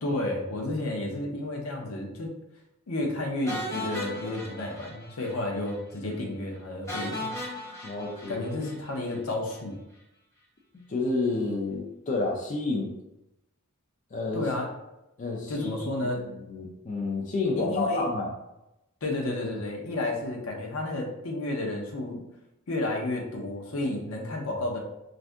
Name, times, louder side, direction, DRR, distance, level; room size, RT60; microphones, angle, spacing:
voice 1, 0.0-2.3 2.9-7.3 8.3-9.7 14.3-14.7 15.5-16.2 17.6-18.1 19.0-22.2 22.7-24.8, left 2 dB, 75° left, 1 dB, 0.7 m, -31 dB
sound 1, 3.5-5.4 5.6-5.8 6.1-6.2 6.9-9.2, left 1 dB, 15° left, 0.9 m, -37 dB
voice 2, 7.8-8.5 10.7-12.9 14.1-14.5 15.2-15.9 16.2-18.3, left 3 dB, 35° left, -1 dB, 0.4 m, -30 dB
2.6 x 2.5 x 3.3 m, 0.91 s
head